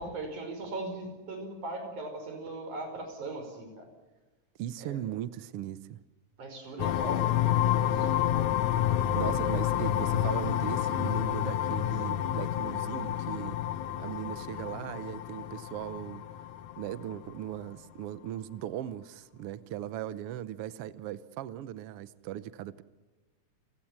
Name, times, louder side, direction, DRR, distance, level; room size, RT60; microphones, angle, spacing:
voice 1, 0.0-3.9 4.8-5.0 6.4-7.4 7.6-8.1 14.5-14.8, right 2 dB, 85° right, 6.8 m, -39 dB
voice 2, 4.6-6.0 9.2-13.7 14.0-16.2 16.8-22.8, right 12 dB, 70° right, 1.5 m, -38 dB
sound 1, 6.8-17.3, left 11 dB, 85° left, 2.5 m, -29 dB
29.5 x 17.0 x 7.4 m
omnidirectional pair, 3.3 m